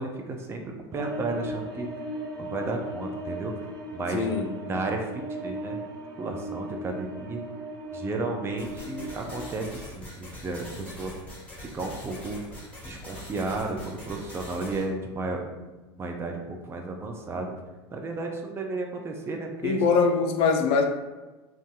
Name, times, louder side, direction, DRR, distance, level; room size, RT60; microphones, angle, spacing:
voice 1, 0.0-1.9 2.4-3.7 3.9-4.3 4.7-5.8 6.2-7.4 7.9-11.1 11.6-12.4 12.8-15.7 16.0-17.5 17.9-19.8, right 3 dB, 20° right, 3 dB, 0.4 m, -33 dB
sound 1, 0.9-9.5, right 1 dB, 70° right, 0.7 m, -37 dB
voice 2, 4.1-4.5 19.6-20.8, left 5 dB, 45° left, 4 dB, 0.4 m, -22 dB
sound 2, 8.6-14.8, left 1 dB, 10° left, 1.4 m, -43 dB
2.6 x 2.3 x 3.5 m, 1.2 s
hypercardioid pair, 85°, 14 cm